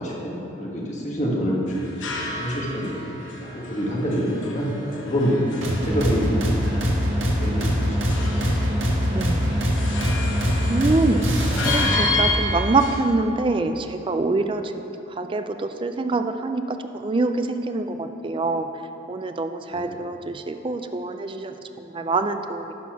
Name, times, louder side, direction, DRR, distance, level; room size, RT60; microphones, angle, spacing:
voice 1, 0.0-5.5 5.8-6.7 7.4-8.7 19.7-20.0, equal, 35° left, -4 dB, 1.5 m, -27 dB
sound 1, 1.7-13.0, left 3 dB, 70° left, 1.2 m, -31 dB
sound 2, 5.6-12.3, equal, 85° right, 1.5 m, -23 dB
voice 2, 9.1-9.6 10.7-11.2 11.6-14.9 15.2-18.7 19.1-22.7, right 3 dB, 25° right, 8 dB, 0.4 m, -25 dB
11.5 x 4.2 x 5.9 m, 2.9 s
head